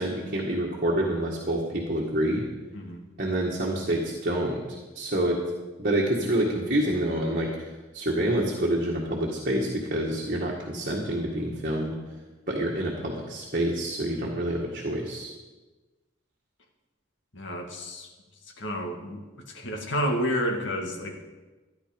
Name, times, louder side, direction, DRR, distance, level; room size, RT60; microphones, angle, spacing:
voice 1, 0.0-2.4 3.2-4.6 4.9-5.4 5.8-7.7 7.9-11.9 12.5-15.3, right 1 dB, 45° right, -2 dB, 1.8 m, -27 dB
voice 2, 17.3-18.1 18.6-19.2 19.5-21.2, equal, 80° left, 3 dB, 2.0 m, -30 dB
14.0 x 10.5 x 5.3 m, 1.2 s
head